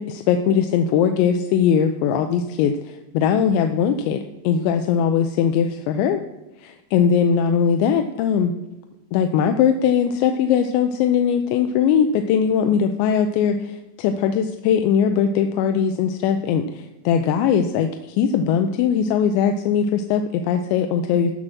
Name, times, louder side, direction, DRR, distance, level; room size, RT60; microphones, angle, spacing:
voice 1, 0.0-6.2 6.6-8.5 9.1-21.3, left 7 dB, 85° left, 7 dB, 2.8 m, -20 dB
14.0 x 4.9 x 6.1 m, 1.0 s
omnidirectional pair, 5.2 m